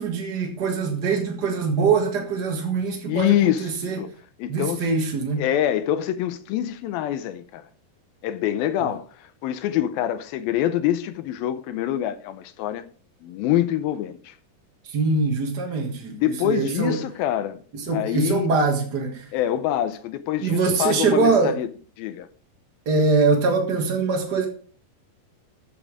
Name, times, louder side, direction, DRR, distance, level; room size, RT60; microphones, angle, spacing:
voice 1, 0.0-4.0 4.5-5.4 8.8-8.9 14.8-16.2 16.4-17.0 17.7-19.3 20.4-21.5 22.8-24.5, right 4 dB, 65° right, 1.0 m, -23 dB
voice 2, 3.1-4.1 4.4-4.9 5.4-7.7 8.2-12.8 13.2-14.4 16.1-17.6 17.9-18.6 19.3-21.7 22.0-22.3, left 12 dB, 80° left, 2.2 m, -25 dB
14.0 x 7.0 x 4.8 m
omnidirectional pair, 4.8 m